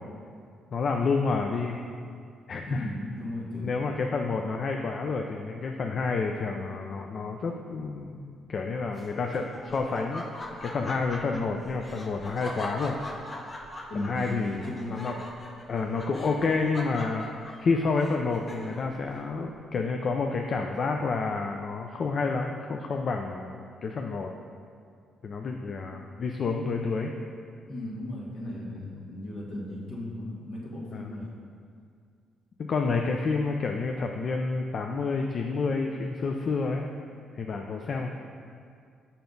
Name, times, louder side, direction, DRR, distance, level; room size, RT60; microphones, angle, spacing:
voice 1, 0.7-1.8 2.5-2.9 3.6-13.0 13.9-15.2 15.7-17.3 17.6-24.3 25.2-27.1 30.9-31.1 32.7-36.9 37.3-38.1, left 4 dB, 50° left, 3 dB, 0.4 m, -29 dB
voice 2, 2.7-3.8 13.9-15.1 27.7-31.3, left 1 dB, 70° left, -4 dB, 1.7 m, -36 dB
Laughter, 8.9-19.0, left 1 dB, 30° left, 0.8 m, -41 dB
6.9 x 5.7 x 3.9 m, 2.3 s
cardioid pair, 90°, 0 cm